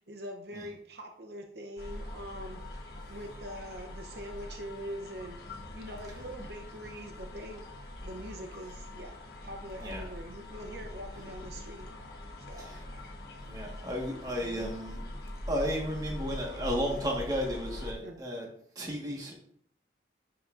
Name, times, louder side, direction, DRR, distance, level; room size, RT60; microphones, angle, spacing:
voice 1, 0.0-7.7 8.0-11.9 12.5-12.8 14.4-14.7 18.0-18.2, equal, 60° right, 3 dB, 0.8 m, -44 dB
sound 1, 1.8-17.9, left 1 dB, 55° left, 1.3 m, -43 dB
voice 2, 9.8-10.1 12.6-12.8 13.4-15.0 15.5-18.4 18.7-19.3, equal, 20° right, -1 dB, 1.5 m, -33 dB
10.5 x 5.8 x 2.6 m, 0.63 s
head